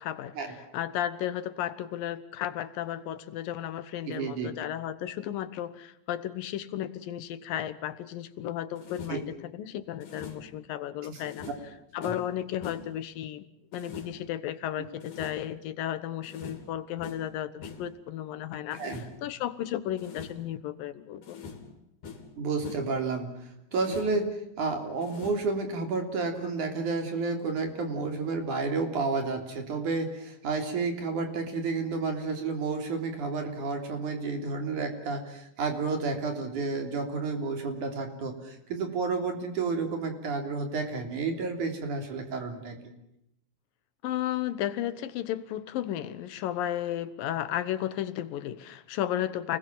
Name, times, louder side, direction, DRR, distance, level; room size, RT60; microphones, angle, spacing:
voice 1, 0.0-11.5 11.9-13.5 13.7-21.4 44.0-49.6, left 11 dB, 80° left, 13 dB, 2.9 m, -34 dB
voice 2, 4.1-4.5 9.1-9.2 11.1-11.2 12.0-12.1 18.7-19.0 22.4-24.2 24.6-42.9, right 4 dB, 60° right, 5 dB, 4.8 m, -31 dB
sound 1, 8.8-9.3 10.0-10.6 11.2-12.4 12.6-13.0 13.7-14.3 15.0-15.6 16.2-16.7 17.0-17.4 17.6-17.9 18.7-19.3 20.0-20.5 21.2-21.8 22.0-22.3 22.6-23.0 23.7-24.3 25.0-25.6, left 5 dB, 65° left, 5.1 m, -44 dB
29.0 x 20.5 x 7.4 m, 0.79 s
omnidirectional pair, 4.0 m